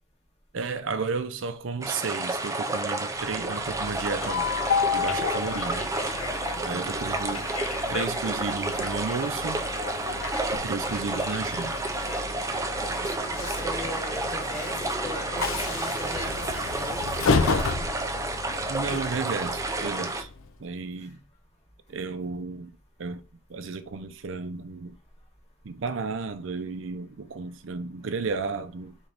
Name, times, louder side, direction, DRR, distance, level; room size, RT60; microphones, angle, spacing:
voice 1, 0.5-4.5 4.9-5.9 6.6-7.5 7.8-9.6 10.5-11.8 18.7-20.3 20.6-21.2 21.9-22.7 23.0-23.2 23.5-25.0 25.6-29.0, right 4 dB, 65° right, 0.5 m, -33 dB
sound 1, 1.8-20.2, right 2 dB, 15° right, 0.5 m, -31 dB
Train, 3.2-20.5, left 5 dB, 80° left, 0.5 m, -32 dB
voice 2, 6.5-6.9 12.8-18.0, left 1 dB, 35° left, 2.3 m, -39 dB
4.0 x 3.4 x 3.9 m
head